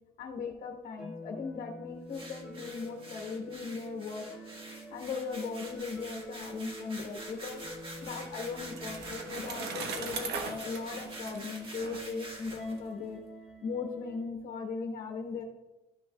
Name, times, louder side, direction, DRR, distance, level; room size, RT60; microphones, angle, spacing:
voice 1, 0.2-4.3 4.9-7.6 8.0-13.2 13.6-15.4, left 5 dB, 55° left, 2 dB, 1.2 m, -38 dB
sound 1, 1.0-14.2, equal, 5° right, 2.1 m, -47 dB
sound 2, 2.1-12.8, right 1 dB, 30° right, 1.8 m, -46 dB
Bicycle, 7.7-12.8, right 5 dB, 80° right, 1.1 m, -40 dB
13.0 x 6.2 x 2.3 m, 1.0 s
cardioid pair, 110°, 17 cm